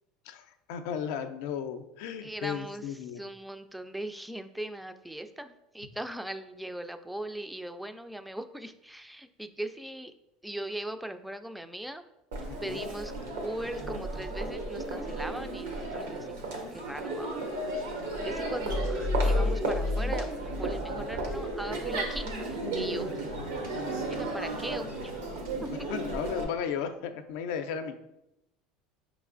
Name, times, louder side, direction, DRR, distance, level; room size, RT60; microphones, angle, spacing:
voice 1, 0.3-3.2 12.5-12.9 25.9-28.0, left 7 dB, 75° left, 8 dB, 0.4 m, -35 dB
voice 2, 2.2-10.1 10.4-12.0 12.6-13.1 13.4-17.3 18.2-23.1 24.1-24.9 25.6-25.9, right 1 dB, 5° right, 9 dB, 0.3 m, -39 dB
Crowd, 12.3-26.4, right 2 dB, 90° right, 0.9 m, -34 dB
sound 1, 18.6-21.5, left 2 dB, 55° right, 0.6 m, -30 dB
5.2 x 3.1 x 2.5 m, 0.88 s
supercardioid pair, 105°, 0 cm